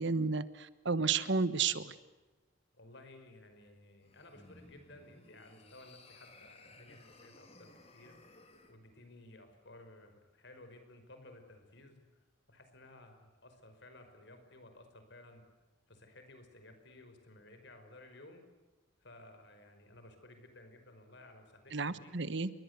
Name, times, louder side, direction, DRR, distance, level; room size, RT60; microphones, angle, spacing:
voice 1, 0.0-1.9 21.7-22.5, right 4 dB, 60° right, 14 dB, 1.3 m, -32 dB
voice 2, 2.8-8.2 8.7-12.1 12.5-15.4 15.9-18.4 19.0-22.2, left 2 dB, 60° left, 7 dB, 5.3 m, -56 dB
sound 1, 4.0-8.8, left 2 dB, 30° left, 2.8 m, -58 dB
29.0 x 22.5 x 8.3 m, 1.2 s
head